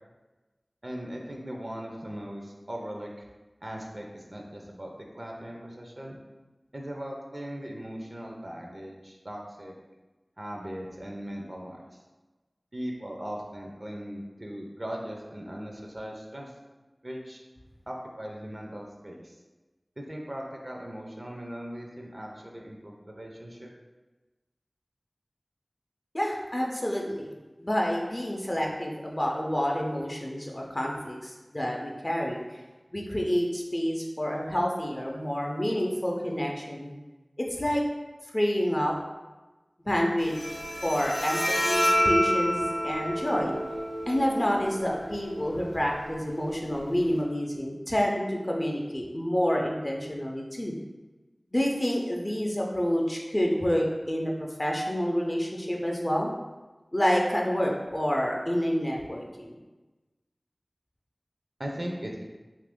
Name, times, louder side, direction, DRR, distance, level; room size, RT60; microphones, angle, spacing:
voice 1, 0.8-3.2 3.6-6.2 6.7-9.7 10.4-12.0 12.7-16.5 17.0-17.4 17.9-19.4 20.0-23.7 61.6-62.3, equal, 45° right, 0 dB, 0.4 m, -39 dB
voice 2, 26.1-27.3 27.6-32.4 32.9-36.9 37.4-37.8 38.3-38.9 39.9-40.4 40.8-43.5 44.1-50.8 51.5-54.3 54.6-56.3 56.9-59.6, equal, 30° left, -1 dB, 0.5 m, -28 dB
Bowed string instrument, 40.2-47.2, equal, 80° left, 0.6 m, -30 dB
2.7 x 2.5 x 3.5 m, 1.2 s
wide cardioid pair, 50°, 0 cm